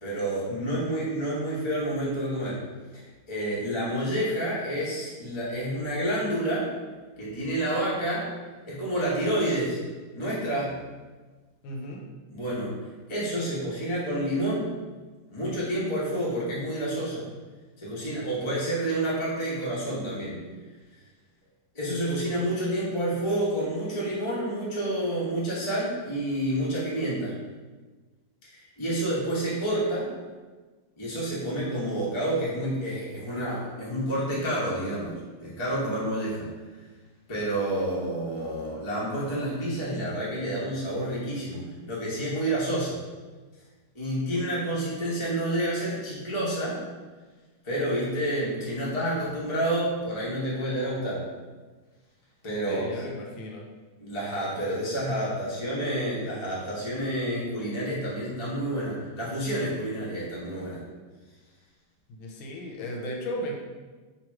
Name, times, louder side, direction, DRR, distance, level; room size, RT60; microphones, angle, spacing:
voice 1, 0.0-2.6 2.9-6.7 7.2-8.3 8.6-9.8 10.1-10.8 12.3-12.7 13.1-14.7 15.3-17.3 17.8-20.4 21.7-27.3 28.5-30.1 31.0-36.5 37.3-43.0 43.9-46.8 47.6-51.3 52.4-52.8 54.0-60.8, right 1 dB, 20° left, -7 dB, 0.8 m, -29 dB
voice 2, 11.6-12.0 52.7-53.6 62.1-63.5, equal, 80° left, 0 dB, 1.4 m, -35 dB
3.3 x 3.0 x 4.6 m, 1.3 s
omnidirectional pair, 2.3 m